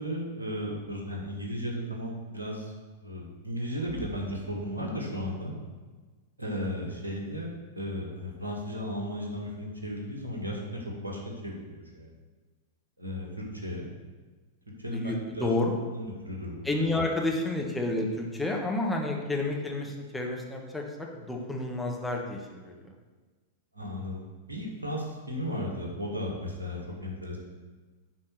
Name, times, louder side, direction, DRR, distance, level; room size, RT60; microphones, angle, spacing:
voice 1, 0.0-2.7 3.0-5.5 6.4-12.1 13.0-13.9 14.8-15.5 15.9-16.7 23.7-27.4, equal, 80° right, -1 dB, 2.0 m, -35 dB
voice 2, 14.9-15.8 16.6-22.9, left 2 dB, 5° left, 0 dB, 1.4 m, -30 dB
9.9 x 4.3 x 6.4 m, 1.3 s
figure-of-eight pair, 95°, 0 cm